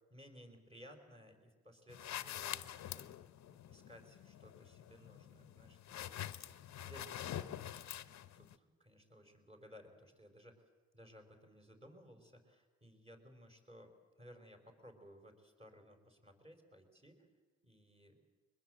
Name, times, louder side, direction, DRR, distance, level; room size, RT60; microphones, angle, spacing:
voice 1, 0.1-3.2 3.5-7.7 8.0-10.6 10.9-17.3 17.6-18.2, equal, 20° right, 3 dB, 4.7 m, -59 dB
sound 1, 1.9-8.5, left 11 dB, 65° left, 0.9 m, -46 dB
22.5 x 21.0 x 7.7 m, 1.3 s
cardioid pair, 90°, 30 cm